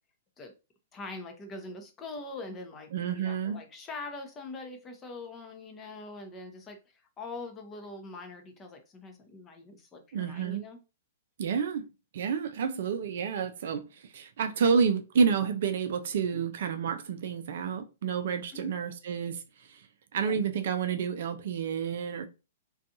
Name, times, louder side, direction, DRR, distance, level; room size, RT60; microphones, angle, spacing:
voice 1, 0.9-10.8 16.3-16.5 18.5-18.7 20.2-20.3, left 3 dB, 20° left, 0.6 m, -43 dB
voice 2, 2.9-3.6 10.1-10.6 11.4-11.8 12.1-19.9 20.1-22.3, right 6 dB, 65° right, 0.4 m, -29 dB
2.5 x 2.3 x 2.7 m
hypercardioid pair, 120°, 0 cm